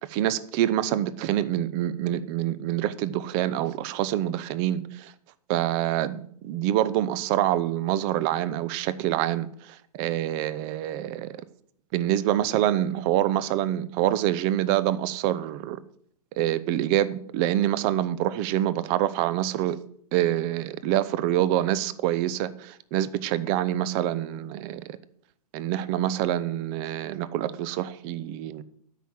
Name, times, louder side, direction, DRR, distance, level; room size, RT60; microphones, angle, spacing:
voice 1, 0.0-5.1 5.5-11.4 11.9-15.8 16.4-19.8 20.1-24.8 25.5-28.6, right 12 dB, 30° right, 17 dB, 0.7 m, -26 dB
12.5 x 5.8 x 7.6 m, 0.64 s
figure-of-eight pair, 110°, 20 cm